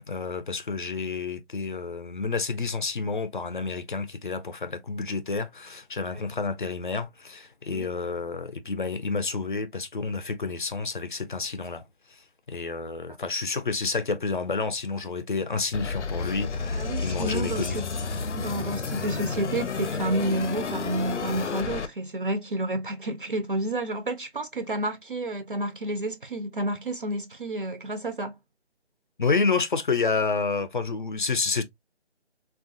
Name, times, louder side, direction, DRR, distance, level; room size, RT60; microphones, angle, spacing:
voice 1, 0.0-11.8 12.1-12.2 12.5-17.8 29.2-31.6, left 4 dB, 45° left, 0.5 m, -29 dB
sound 1, 15.7-21.9, left 4 dB, 85° left, 0.7 m, -31 dB
voice 2, 16.7-17.8 18.4-28.4, right 1 dB, 50° right, 0.5 m, -30 dB
3.5 x 2.4 x 2.4 m
figure-of-eight pair, 165°, 34 cm